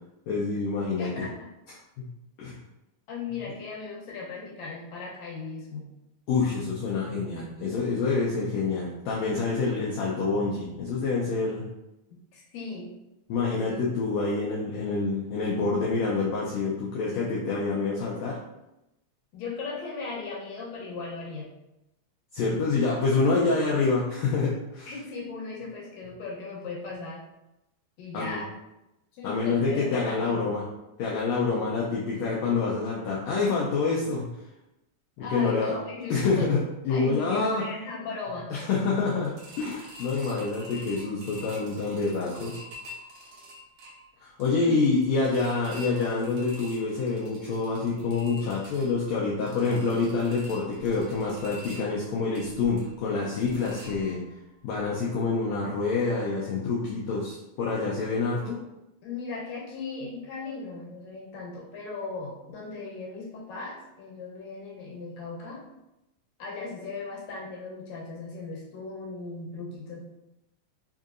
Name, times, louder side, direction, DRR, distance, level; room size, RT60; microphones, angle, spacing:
voice 1, 0.3-1.2 2.0-2.1 2.4-2.6 6.3-11.7 13.3-18.4 22.3-24.9 28.1-28.4 29.2-30.7 31.0-34.3 35.2-35.7 36.1-36.6 36.8-37.7 38.5-42.5 44.2-54.2 54.6-58.6, left 4 dB, 90° left, -5 dB, 1.5 m, -27 dB
voice 2, 1.0-1.5 3.1-5.9 12.3-12.9 13.5-13.9 19.3-21.5 24.8-27.2 28.0-28.5 29.2-30.5 35.2-36.5 36.9-38.5 44.6-44.8 59.0-65.6 66.4-70.0, left 4 dB, 70° left, -4 dB, 1.7 m, -37 dB
sound 1, 39.2-54.4 54.8-54.9 55.2-55.3, equal, 80° right, 1.3 m, -47 dB
4.9 x 2.7 x 2.5 m, 0.91 s
omnidirectional pair, 3.7 m